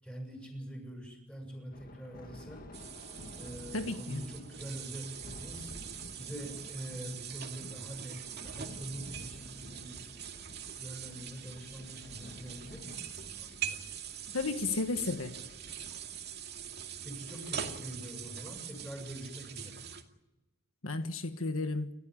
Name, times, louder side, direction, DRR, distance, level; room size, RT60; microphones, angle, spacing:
voice 1, 0.0-2.7 3.3-5.7 6.2-10.0 10.8-13.8 17.0-19.9, equal, 5° left, 7.9 m, -44 dB
Thunder, 1.7-19.4, left 1 dB, 45° left, 1.9 m, -52 dB
sound 1, 2.7-20.0, right 9 dB, 55° right, 2.3 m, -43 dB
voice 2, 3.7-4.2 14.3-15.4 20.8-21.9, left 3 dB, 80° left, 1.5 m, -33 dB
29.0 x 14.0 x 9.9 m
head